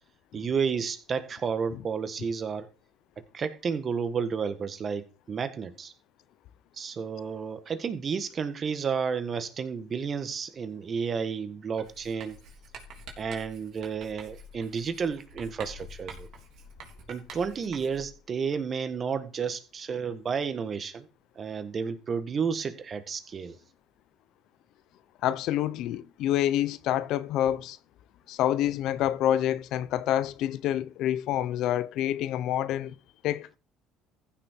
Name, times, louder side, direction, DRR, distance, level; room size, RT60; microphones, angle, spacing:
voice 1, 0.3-2.7 3.3-5.9 6.8-12.4 13.2-16.3 17.1-21.1 21.4-23.6, right 6 dB, 35° right, 1.6 m, -31 dB
Writing, 11.8-18.2, right 2 dB, 60° right, 3.6 m, -47 dB
voice 2, 25.2-27.8 28.3-32.9 33.2-33.6, left 12 dB, 65° left, 0.7 m, -27 dB
15.0 x 6.6 x 4.5 m
cardioid pair, 105°, 0 cm